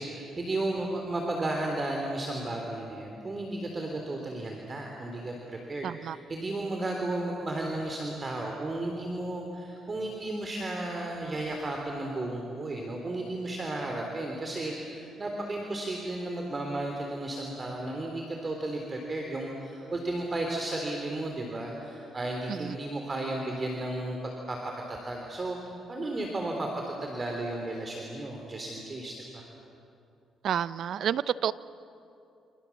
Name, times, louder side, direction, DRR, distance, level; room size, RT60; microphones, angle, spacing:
voice 1, 0.0-24.2 24.5-24.6 24.9-26.7 27.0-29.5, right 2 dB, 30° right, 1 dB, 3.7 m, -34 dB
voice 2, 5.8-6.2 22.5-22.8 30.4-31.5, right 9 dB, 65° right, 17 dB, 0.7 m, -30 dB
28.5 x 27.0 x 7.4 m, 2.7 s
cardioid pair, 90°, 0 cm